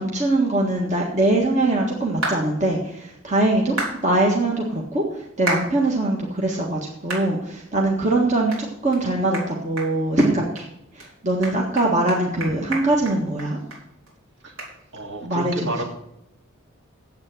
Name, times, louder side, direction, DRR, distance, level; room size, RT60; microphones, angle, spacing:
voice 1, 0.0-10.7 10.9-13.6 15.2-15.7, right 2 dB, 35° right, -1 dB, 1.6 m, -22 dB
sound 1, 2.2-2.4 3.8-4.0 5.5-5.7 6.2-6.3 7.1-7.3 7.7-7.8 8.5-8.6 8.9-9.0 9.3-9.5 9.8-9.9 10.2-10.6 11.0-11.1 11.4-13.8 14.1-14.2 14.6-14.7, right 2 dB, 85° right, 4.1 m, -29 dB
voice 2, 14.9-15.8, right 2 dB, 55° right, 1 dB, 2.4 m, -30 dB
9.5 x 8.1 x 7.7 m, 0.81 s
head